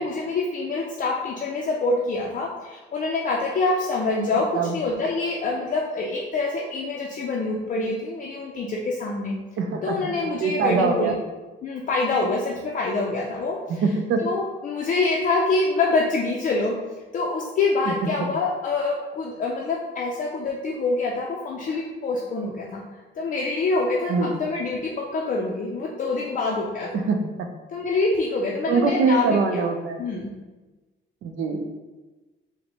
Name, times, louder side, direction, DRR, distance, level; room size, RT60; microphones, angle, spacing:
voice 1, 0.0-9.4 9.8-11.2 11.6-13.8 14.2-16.7 17.1-22.8 23.1-27.0 27.7-29.7 30.0-30.3, left 3 dB, 40° left, -2 dB, 0.4 m, -26 dB
voice 2, 9.6-11.2 13.7-14.3 17.9-18.0 24.1-24.3 26.9-27.2 28.7-30.0 31.2-31.6, right 4 dB, 70° right, 5 dB, 0.5 m, -23 dB
4.2 x 2.1 x 2.9 m, 1.2 s
cardioid pair, 90°, 20 cm